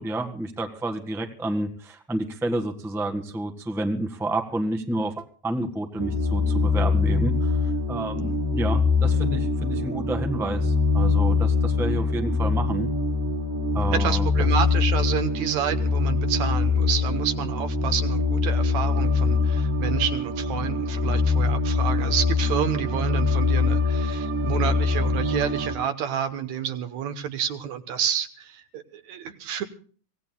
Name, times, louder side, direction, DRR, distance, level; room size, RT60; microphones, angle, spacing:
voice 1, 0.0-7.6 7.9-12.9 13.7-14.5, right 1 dB, ahead, 5 dB, 0.9 m, -30 dB
sound 1, 6.0-25.8, left 4 dB, 50° right, 2.8 m, -23 dB
voice 2, 13.9-29.6, right 8 dB, 70° right, 8 dB, 2.3 m, -29 dB
25.0 x 17.5 x 2.3 m, 0.43 s
omnidirectional pair, 3.4 m